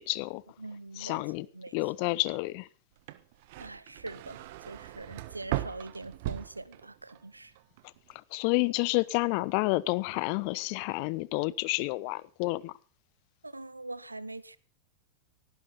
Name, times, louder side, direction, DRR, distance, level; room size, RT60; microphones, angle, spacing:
voice 1, 0.0-0.4 1.0-1.5 1.7-2.7 8.1-12.7, left 23 dB, 45° left, 0.9 m, -30 dB
voice 2, 0.6-1.2 1.5-1.7 3.6-7.5 13.4-14.6, right 2 dB, 85° right, 0.8 m, -43 dB
sound 1, 3.0-7.2 7.6-8.1, right 15 dB, 55° right, 1.3 m, -38 dB
18.0 x 16.0 x 4.1 m
figure-of-eight pair, 90°, 0 cm